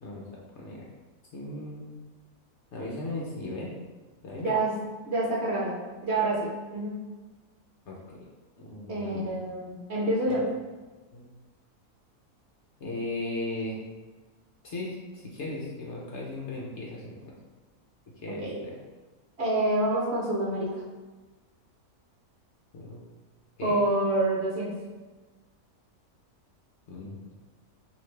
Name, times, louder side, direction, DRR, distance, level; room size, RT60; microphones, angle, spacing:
voice 1, 0.5-0.9 1.3-1.9 2.7-3.7 4.2-4.5 7.9-8.2 8.6-9.4 10.3-10.4 11.1-11.3 12.8-13.8 14.6-17.2 18.2-18.7 22.7-23.1 23.6-23.8 26.9-27.2, left 2 dB, 60° left, -3 dB, 0.9 m, -37 dB
voice 2, 4.4-4.7 5.1-5.8 6.0-7.0 8.9-10.4 18.3-18.6 19.4-20.8 23.6-24.7, right 2 dB, 55° right, -4 dB, 0.9 m, -27 dB
5.0 x 2.7 x 3.2 m, 1.3 s
omnidirectional pair, 1.6 m